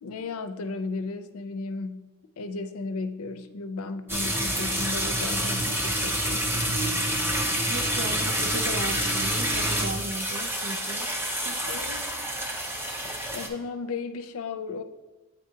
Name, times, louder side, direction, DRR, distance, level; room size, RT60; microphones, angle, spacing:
voice 1, 0.0-2.1 2.4-6.7 11.7-12.1 13.3-14.8, left 3 dB, 70° left, 9 dB, 0.5 m, -35 dB
sound 1, 4.1-13.5, equal, 10° right, 0.6 m, -28 dB
voice 2, 7.7-11.7, right 2 dB, 80° right, 6 dB, 0.6 m, -36 dB
8.9 x 4.1 x 2.8 m, 1.1 s
head